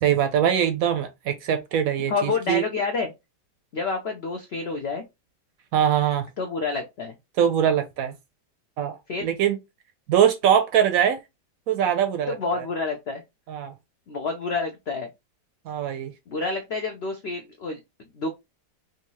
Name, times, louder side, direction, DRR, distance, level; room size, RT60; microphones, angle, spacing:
voice 1, 0.0-2.6 5.7-6.3 7.4-8.1 8.8-9.6 10.1-11.2 11.7-12.3 13.5-13.7 15.7-16.1, right 9 dB, 70° right, 0.9 m, -22 dB
voice 2, 2.1-3.1 3.7-5.0 6.4-7.2 9.1-9.3 12.3-13.2 14.1-15.1 16.3-17.8 18.1-18.3, left 4 dB, 90° left, 0.5 m, -28 dB
3.5 x 2.7 x 2.9 m
omnidirectional pair, 1.8 m